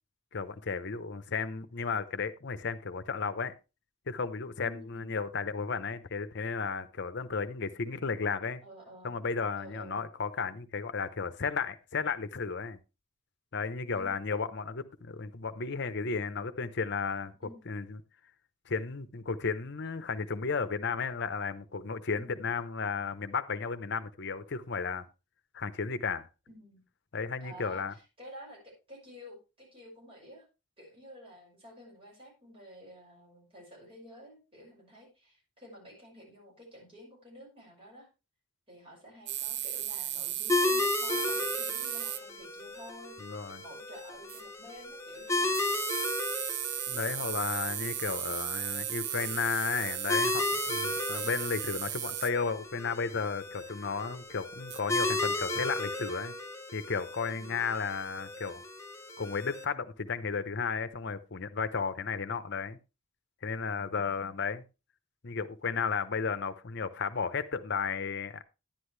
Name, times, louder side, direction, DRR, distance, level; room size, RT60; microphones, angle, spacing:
voice 1, 0.3-3.5 4.1-8.6 9.0-12.8 13.5-17.3 17.7-18.0 18.7-25.1 25.5-26.3 27.1-27.9 43.2-43.6 46.9-56.3 56.7-58.6 59.2-62.8 63.4-64.6 65.2-68.4, left 5 dB, 60° left, 0.8 m, -34 dB
voice 2, 4.6-5.2 8.6-9.1 9.6-10.0 13.9-14.3 17.4-17.8 22.2-22.5 26.5-26.8 27.4-30.5 30.8-38.1 38.7-43.2 43.6-45.6 51.0-51.3, equal, 30° right, 5.9 m, -51 dB
sound 1, 39.3-42.2 44.3-44.4 45.5-52.3 54.7-54.8, right 12 dB, 60° right, 0.6 m, -35 dB
sound 2, 40.5-59.6, left 2 dB, 15° left, 1.1 m, -35 dB
10.5 x 9.9 x 3.3 m
head